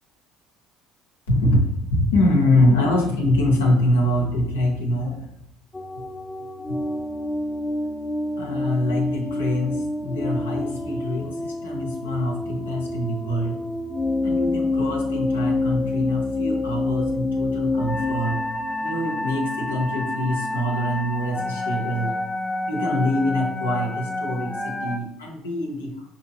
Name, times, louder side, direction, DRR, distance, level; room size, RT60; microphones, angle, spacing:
voice 1, 1.3-5.3 6.7-6.8 8.4-13.6 14.2-18.4 18.8-22.1 22.7-26.1, left 1 dB, 90° left, 1 dB, 0.7 m, -24 dB
sound 1, 5.7-25.0, left 2 dB, 20° left, 0.5 m, -28 dB
5.2 x 2.8 x 2.8 m, 0.79 s
hypercardioid pair, 60°, 0 cm